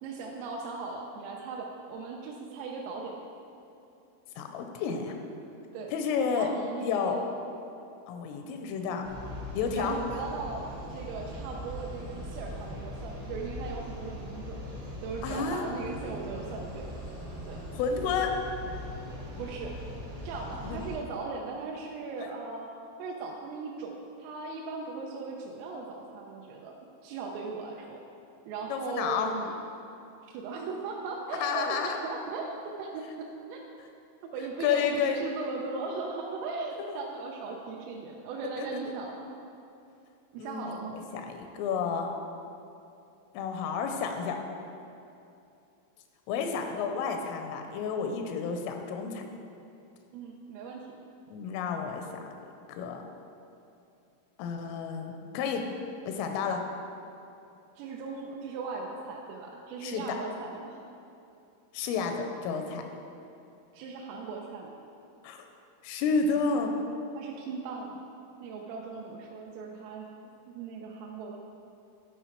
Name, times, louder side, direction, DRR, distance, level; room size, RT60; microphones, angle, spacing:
voice 1, 0.0-3.2 5.7-5.9 6.3-7.2 9.7-16.9 17.4-17.6 19.4-19.8 20.2-22.7 23.0-26.7 27.0-28.0 28.5-29.6 30.2-33.6 34.2-39.3 40.3-41.0 50.1-50.9 57.8-60.8 63.7-64.7 67.1-68.1 68.4-70.1 70.5-71.4, right 4 dB, 85° right, 0 dB, 3.2 m, -38 dB
voice 2, 4.4-5.2 5.9-6.5 6.8-7.2 8.1-9.1 9.6-10.0 15.2-15.7 17.7-18.3 20.6-20.8 22.2-22.3 28.7-29.3 31.4-32.0 34.6-35.3 36.8-37.0 38.6-38.8 40.4-42.1 43.3-44.4 46.3-49.2 51.3-52.0 52.7-53.0 54.4-55.6 56.1-56.6 59.8-60.2 61.7-62.8 65.2-65.5 65.8-66.7, left 5 dB, 85° left, 4 dB, 3.1 m, -31 dB
sound 1, 9.0-20.9, left 1 dB, 60° right, 1.3 m, -40 dB
11.0 x 4.6 x 4.5 m, 2.7 s
omnidirectional pair, 5.7 m